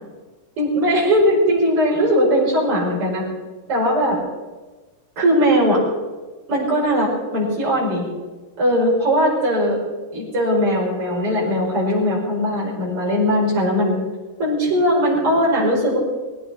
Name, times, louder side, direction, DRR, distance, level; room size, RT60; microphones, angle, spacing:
voice 1, 0.6-3.2 3.7-4.2 5.2-5.8 6.5-8.1 8.6-9.8 10.1-14.0 14.4-16.0, equal, 45° right, -4 dB, 6.0 m, -19 dB
19.5 x 16.5 x 4.3 m, 1.3 s
omnidirectional pair, 3.5 m